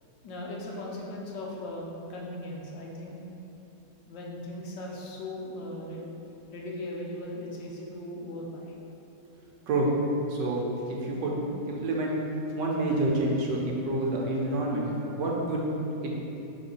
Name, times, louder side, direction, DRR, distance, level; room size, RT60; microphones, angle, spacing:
voice 1, 0.2-3.2 4.1-6.1 6.5-8.7 14.5-15.2, left 1 dB, 75° left, -2 dB, 1.5 m, -38 dB
voice 2, 10.3-12.1 12.6-14.9 15.2-15.6 16.0-16.2, right 2 dB, 70° right, -2 dB, 1.4 m, -28 dB
5.0 x 3.6 x 5.4 m, 2.8 s
omnidirectional pair, 2.0 m